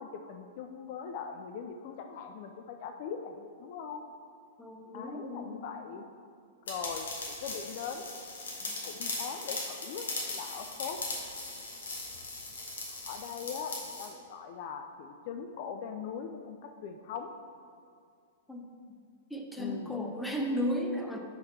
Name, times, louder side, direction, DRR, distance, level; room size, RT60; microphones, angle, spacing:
voice 1, 0.0-4.1 4.9-6.0 6.7-8.2 8.8-10.1 10.3-11.0 13.1-17.3 19.6-20.0, left 6 dB, 50° left, 5 dB, 0.4 m, -41 dB
voice 2, 4.6-5.6 8.7-8.8 18.5-18.7 19.3-21.2, equal, 5° left, 1 dB, 0.7 m, -34 dB
sound 1, 6.7-14.1, left 2 dB, 70° left, 1.2 m, -39 dB
5.8 x 4.9 x 4.2 m, 2.3 s
figure-of-eight pair, 100°, 0 cm